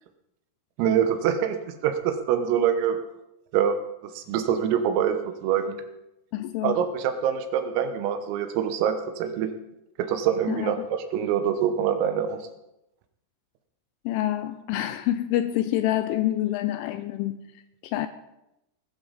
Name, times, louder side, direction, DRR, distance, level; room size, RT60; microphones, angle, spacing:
voice 1, 0.8-1.6 1.8-3.0 3.5-3.8 4.0-5.8 6.6-9.5 10.0-12.4, right 8 dB, 85° right, 3.8 m, -25 dB
voice 2, 6.3-6.8 10.5-10.7 14.1-17.4 17.8-18.1, left 13 dB, 85° left, 2.8 m, -27 dB
19.5 x 12.0 x 4.1 m
omnidirectional pair, 6.0 m